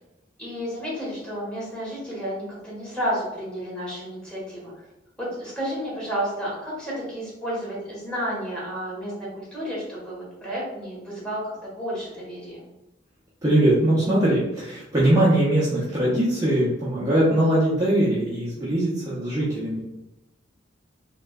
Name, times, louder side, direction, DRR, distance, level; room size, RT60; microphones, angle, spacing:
voice 1, 0.4-4.7 5.2-12.6, equal, 5° left, -7 dB, 1.3 m, -31 dB
voice 2, 13.4-19.8, right 1 dB, 20° right, -9 dB, 0.7 m, -21 dB
3.2 x 3.0 x 2.3 m, 0.95 s
head